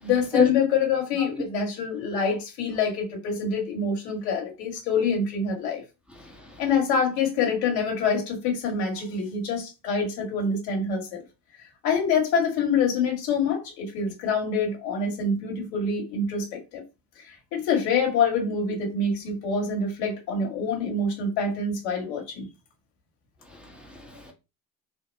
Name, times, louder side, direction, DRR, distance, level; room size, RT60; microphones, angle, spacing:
voice 1, 0.0-5.8 6.6-11.2 11.8-16.8 17.3-22.5, left 5 dB, 70° left, 2.0 m, -26 dB
voice 2, 6.2-6.6 23.5-24.3, left 4 dB, ahead, 1.6 m, -28 dB
4.0 x 2.9 x 4.3 m
hypercardioid pair, 60°, 46 cm